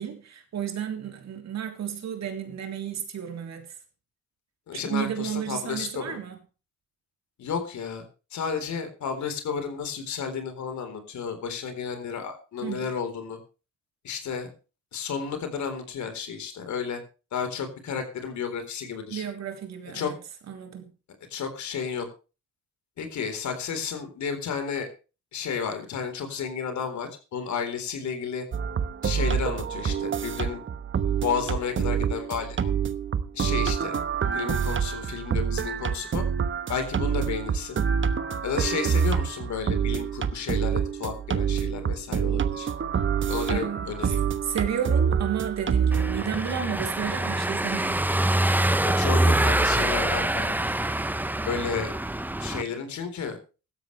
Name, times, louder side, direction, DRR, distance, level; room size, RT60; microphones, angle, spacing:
voice 1, 0.0-3.7 4.7-6.4 12.6-12.9 19.1-20.2 20.5-20.9 43.5-44.2 44.4-48.0, right 8 dB, 60° right, 3.5 m, -32 dB
voice 2, 4.7-6.2 7.4-8.0 8.3-13.4 14.0-14.5 14.9-17.0 17.3-19.3 19.9-20.1 21.3-22.1 23.0-24.9 25.3-28.5 29.0-30.6 31.2-32.7 33.3-34.0 34.3-36.2 36.7-37.8 38.4-42.7 43.3-44.2 48.8-50.6 51.4-51.9 52.4-53.4, left 6 dB, 70° left, 4.0 m, -32 dB
sound 1, 28.5-46.2, right 7 dB, 40° right, 1.1 m, -26 dB
Car passing by / Engine, 45.9-52.6, right 1 dB, 5° right, 0.8 m, -25 dB
16.0 x 13.0 x 3.3 m
cardioid pair, 90°, 30 cm